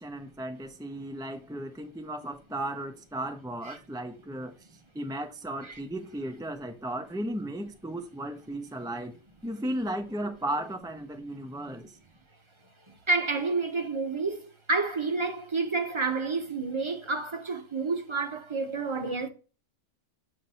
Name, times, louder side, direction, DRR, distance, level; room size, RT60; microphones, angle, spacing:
voice 1, 0.0-4.6 4.9-9.1 9.4-11.9, right 1 dB, 5° right, 0.3 m, -35 dB
voice 2, 12.9-19.3, right 3 dB, 30° right, 0.8 m, -30 dB
7.4 x 2.6 x 5.5 m
omnidirectional pair, 1.2 m